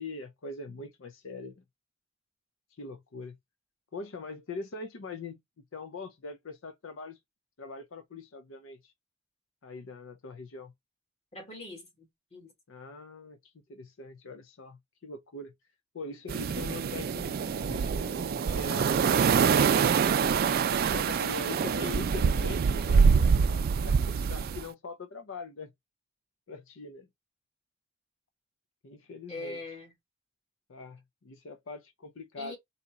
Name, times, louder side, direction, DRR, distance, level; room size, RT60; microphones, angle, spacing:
voice 1, 0.0-1.6 2.7-3.4 3.9-5.4 5.7-7.2 7.6-8.9 9.6-10.7 12.7-15.5 15.9-23.4 23.8-25.7 26.5-27.1 28.8-29.6 30.7-32.6, left 3 dB, 70° left, 0.6 m, -42 dB
voice 2, 11.3-12.5 29.3-29.9 32.4-32.6, left 2 dB, 30° left, 1.8 m, -42 dB
sound 1, 16.3-24.6, right 6 dB, 50° right, 0.3 m, -25 dB
4.2 x 2.8 x 3.6 m
head